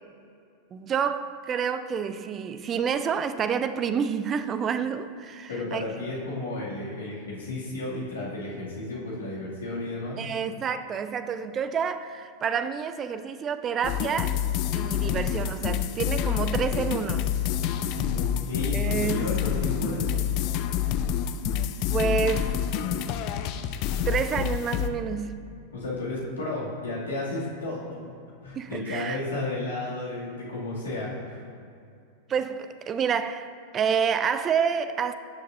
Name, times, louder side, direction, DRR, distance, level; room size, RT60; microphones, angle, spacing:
voice 1, 0.7-5.8 10.2-14.4 14.7-17.4 18.7-19.4 21.9-22.6 24.1-25.4 28.5-29.2 32.3-35.1, right 7 dB, 25° right, 0.4 m, -28 dB
voice 2, 5.5-10.2 18.1-20.3 25.7-28.0 28.4-31.4, left 2 dB, 70° left, 2.2 m, -33 dB
sound 1, 13.8-24.9, left 9 dB, 40° left, 0.5 m, -27 dB
16.5 x 6.6 x 2.6 m
figure-of-eight pair, 90°, 0 cm